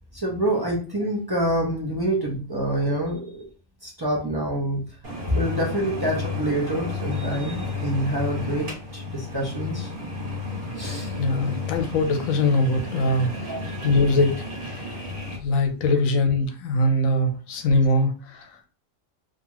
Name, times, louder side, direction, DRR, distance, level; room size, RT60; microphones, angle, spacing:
voice 1, 0.1-3.5 3.8-4.9 5.3-9.9 10.8-11.1 13.5-13.6, right 1 dB, 30° right, -3 dB, 0.4 m, -26 dB
sound 1, 5.0-15.4, left 3 dB, 50° right, 1.2 m, -32 dB
voice 2, 11.2-13.5 13.8-14.9 15.4-18.5, left 2 dB, 85° left, 6 dB, 1.0 m, -22 dB
2.7 x 2.3 x 2.8 m, 0.38 s
omnidirectional pair, 1.4 m